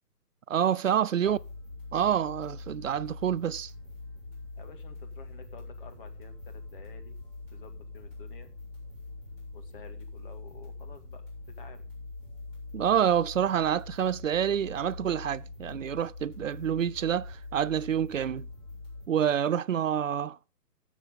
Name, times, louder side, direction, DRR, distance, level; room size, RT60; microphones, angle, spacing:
voice 1, 0.5-1.4 1.9-3.7 12.7-18.5 19.1-20.5, right 9 dB, 55° right, 0.5 m, -27 dB
sound 1, 1.2-19.1, left 3 dB, 20° left, 5.1 m, -43 dB
voice 2, 4.6-7.2 7.5-8.5 9.5-11.2 11.5-11.9, left 5 dB, 35° left, 1.8 m, -51 dB
18.5 x 7.3 x 3.7 m
hypercardioid pair, 155°, 48 cm